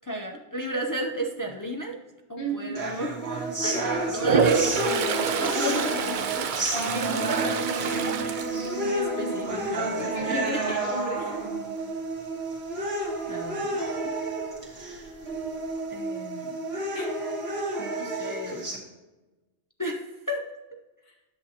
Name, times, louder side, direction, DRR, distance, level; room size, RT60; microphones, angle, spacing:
voice 1, 0.0-2.0 2.3-6.5 8.2-10.8 13.3-14.2 15.9-16.6 17.8-18.6 19.8-20.5, right 1 dB, 30° left, 2 dB, 0.4 m, -33 dB
voice 2, 2.4-2.8 3.6-4.1 6.7-8.0 10.0-11.4 16.9-17.2 21.1-21.2, right 1 dB, 70° left, -2 dB, 2.1 m, -34 dB
sound 1, 2.8-18.8, right 2 dB, 85° right, 1.8 m, -30 dB
Toilet flush, 4.1-9.3 9.7-10.1 14.6-14.7 15.0-15.7, right 6 dB, 60° right, 0.6 m, -28 dB
10.0 x 7.3 x 2.8 m, 1.1 s
omnidirectional pair, 1.0 m